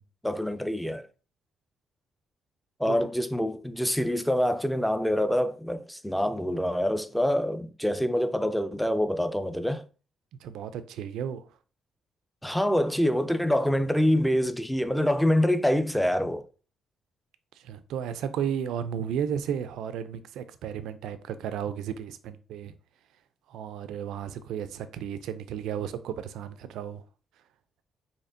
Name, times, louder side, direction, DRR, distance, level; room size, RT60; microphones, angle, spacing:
voice 1, 0.2-1.0 2.8-9.8 12.4-16.4, equal, ahead, 0.4 m, -26 dB
voice 2, 10.4-11.4 17.6-22.7 23.5-27.0, right 8 dB, 85° right, 0.3 m, -33 dB
4.2 x 2.8 x 2.5 m
cardioid pair, 90°, 0 cm